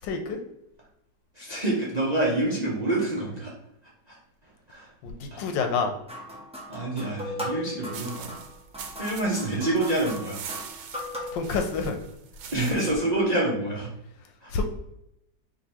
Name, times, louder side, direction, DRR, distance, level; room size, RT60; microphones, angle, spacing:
voice 1, 0.0-0.4 5.0-5.9 11.3-12.0 14.5-14.6, left 4 dB, 85° left, 5 dB, 1.4 m, -27 dB
voice 2, 1.3-3.5 4.1-4.9 5.3-5.4 6.7-8.4 9.0-10.4 12.5-13.9 14.4-14.6, right 2 dB, 35° right, -5 dB, 0.7 m, -27 dB
sound 1, 6.1-11.5, left 1 dB, 10° right, 0.3 m, -38 dB
sound 2, 7.9-13.0, right 7 dB, 85° right, 1.3 m, -43 dB
5.0 x 3.1 x 2.9 m, 0.80 s
omnidirectional pair, 1.9 m